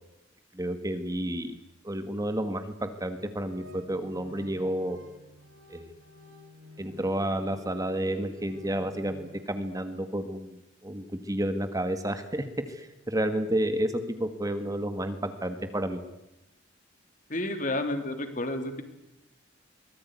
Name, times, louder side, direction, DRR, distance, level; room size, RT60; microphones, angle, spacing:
voice 1, 0.5-1.5 1.8-5.0 5.7-5.9 6.8-16.0, right 1 dB, 20° right, 9 dB, 1.7 m, -31 dB
sound 1, 3.1-9.4, equal, 80° right, 7.4 m, -51 dB
voice 2, 17.3-18.8, left 1 dB, 40° left, 7 dB, 3.4 m, -30 dB
23.5 x 19.5 x 9.5 m, 0.91 s
head